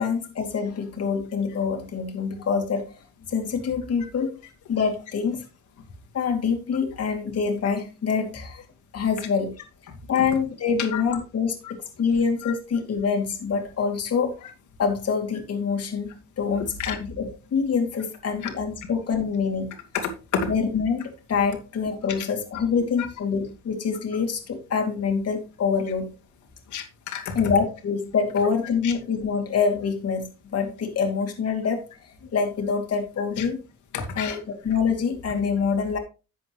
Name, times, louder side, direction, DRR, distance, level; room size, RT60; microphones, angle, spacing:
voice 1, 0.0-3.0 3.3-4.4 4.7-5.4 6.1-8.7 8.9-9.6 10.1-14.3 14.8-19.8 20.5-26.1 27.3-31.8 32.3-33.6 34.2-36.0, left 5 dB, 55° left, 2 dB, 2.7 m, -25 dB
voice 2, 20.0-20.5 26.7-27.3 28.8-28.9 32.2-32.3 33.4-33.5 33.9-34.4, left 7 dB, 75° left, 3 dB, 2.5 m, -30 dB
11.0 x 7.7 x 3.1 m, 0.31 s
cardioid pair, 90°, 30 cm